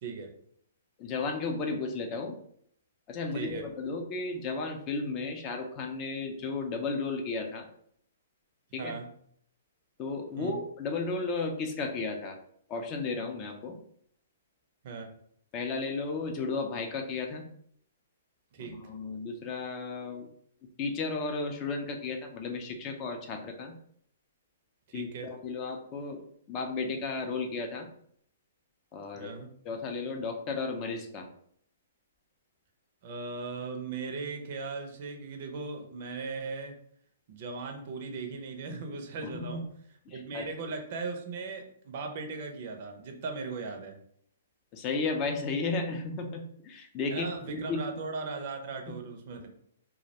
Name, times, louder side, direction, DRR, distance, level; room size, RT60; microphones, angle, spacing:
voice 1, 0.0-0.3 3.3-3.6 8.8-9.1 10.4-10.6 14.8-15.1 18.5-18.8 24.9-25.3 29.2-29.5 33.0-36.8 37.3-39.6 40.1-44.0 47.1-49.5, right 4 dB, 55° right, 4 dB, 0.5 m, -38 dB
voice 2, 1.0-2.4 3.1-7.7 8.7-8.9 10.0-12.4 12.7-13.8 15.5-17.5 18.6-20.3 20.8-23.8 24.9-26.2 26.5-27.9 28.9-31.3 39.2-39.6 40.1-40.5 44.7-47.3 47.6-47.8, left 4 dB, 30° left, 5 dB, 0.4 m, -34 dB
2.2 x 2.0 x 2.8 m, 0.66 s
hypercardioid pair, 135°, 0 cm